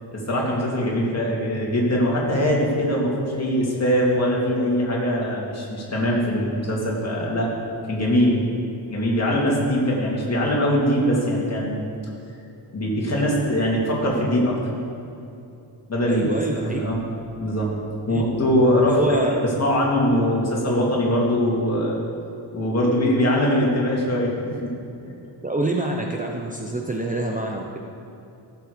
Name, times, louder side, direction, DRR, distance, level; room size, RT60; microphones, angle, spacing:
voice 1, 0.1-7.5 7.8-8.4 8.9-11.8 12.7-14.6 15.9-17.0 17.4-17.7 18.0-22.0 22.5-24.7, equal, 35° left, -4 dB, 3.1 m, -22 dB
voice 2, 16.1-16.8 18.1-18.2 18.9-19.3 25.4-27.8, right 2 dB, 15° right, 0 dB, 0.8 m, -26 dB
17.0 x 7.7 x 5.2 m, 2.8 s
wide cardioid pair, 130°, 46 cm